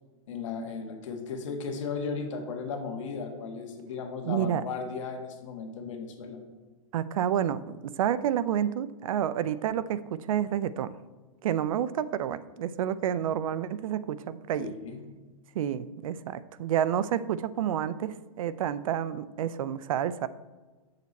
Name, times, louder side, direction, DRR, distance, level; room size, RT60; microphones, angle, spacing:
voice 1, 0.3-6.4 14.6-15.0, left 5 dB, 60° left, 4 dB, 1.6 m, -36 dB
voice 2, 4.3-4.6 6.9-11.0 11.4-14.7 15.5-20.3, right 10 dB, 70° right, 15 dB, 0.5 m, -29 dB
8.3 x 6.7 x 4.1 m, 1.3 s
supercardioid pair, 165°, 18 cm